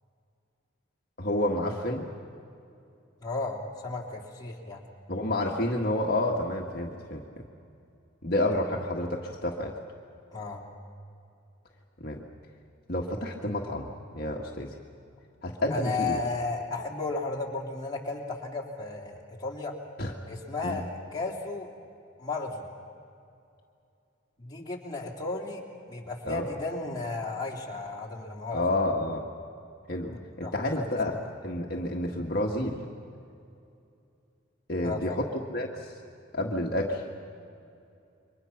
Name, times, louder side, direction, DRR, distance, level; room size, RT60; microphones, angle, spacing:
voice 1, 1.2-2.0 5.1-7.5 8.2-9.7 12.0-12.2 12.9-14.7 15.4-16.2 20.0-20.1 20.6-20.8 26.3-26.4 28.5-29.3 29.9-31.1 31.4-32.8 34.7-35.3 35.5-35.9 36.3-37.0, left 1 dB, 50° left, -1 dB, 1.7 m, -29 dB
voice 2, 3.2-4.8 10.3-10.6 15.7-19.7 20.3-21.7 22.2-22.7 24.4-25.6 25.9-28.6 30.1-31.2 34.8-35.2, left 3 dB, 20° left, -2 dB, 3.1 m, -34 dB
29.0 x 24.0 x 5.9 m, 2.6 s
head